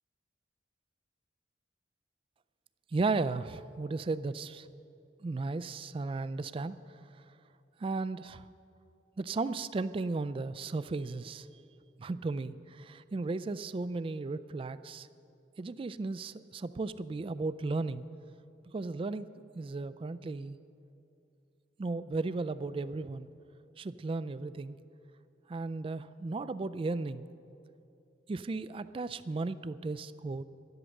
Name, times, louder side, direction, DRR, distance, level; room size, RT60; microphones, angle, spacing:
voice 1, 2.9-4.7 5.2-6.8 7.8-8.4 9.2-11.5 12.0-15.1 15.6-18.0 18.7-19.3 19.5-20.6 21.8-23.3 23.8-24.8 25.5-27.2 28.3-30.4, right 3 dB, 30° right, 15 dB, 0.3 m, -35 dB
12.5 x 11.0 x 6.4 m, 2.6 s
head